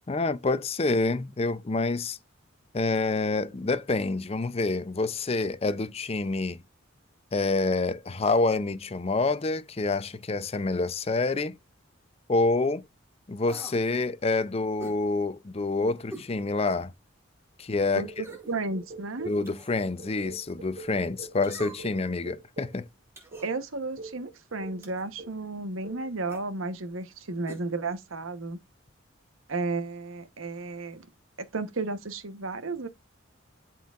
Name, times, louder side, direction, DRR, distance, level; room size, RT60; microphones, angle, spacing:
voice 1, 0.1-2.2 2.7-6.6 7.3-11.6 12.3-12.9 13.3-16.9 17.6-18.0 19.3-22.9, left 3 dB, 30° left, 0.5 m, -27 dB
sound 1, 13.5-13.8 14.8-15.0 16.1-16.3 16.8-16.9 18.2-18.6 19.4-19.8 21.4-22.0 23.2-23.5 24.8-25.1 26.3-26.5 27.5-27.7 27.9-28.0, right 1 dB, 10° right, 2.1 m, -44 dB
voice 2, 17.9-19.3 23.4-28.6 29.5-31.0 31.4-32.9, right 3 dB, 85° right, 1.1 m, -33 dB
sound 2, 18.0-19.5 20.0-22.8 23.3-23.5 24.0-24.2 24.6-24.9 25.2-25.5 25.8-26.1, right 3 dB, 50° right, 2.4 m, -45 dB
11.5 x 4.4 x 2.4 m
head